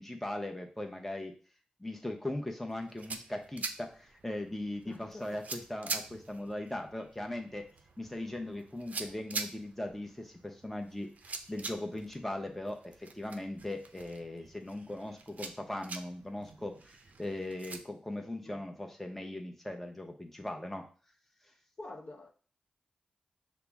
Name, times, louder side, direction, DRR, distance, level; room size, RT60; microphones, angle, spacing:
voice 1, 0.0-1.3 1.8-7.6 8.0-11.1 11.5-20.8, left 1 dB, 10° left, 2 dB, 0.8 m, -39 dB
sound 1, 2.7-17.8, right 4 dB, 65° right, 0.4 m, -45 dB
voice 2, 4.8-5.2 18.4-18.6 21.8-22.3, left 2 dB, 55° left, 2 dB, 0.7 m, -47 dB
5.8 x 2.0 x 3.4 m, 0.40 s
cardioid pair, 50°, 3 cm